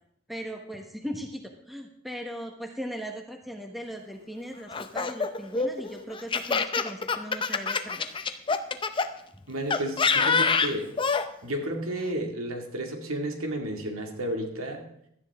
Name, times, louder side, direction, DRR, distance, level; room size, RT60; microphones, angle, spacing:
voice 1, 0.3-8.1 9.3-9.4, equal, ahead, 3 dB, 1.2 m, -38 dB
Laughter, 4.7-9.1 9.7-11.3, left 5 dB, 25° left, 0.6 m, -26 dB
voice 2, 9.5-10.9 11.4-14.9, right 1 dB, 75° right, 3 dB, 2.3 m, -32 dB
17.0 x 12.5 x 3.6 m, 0.72 s
head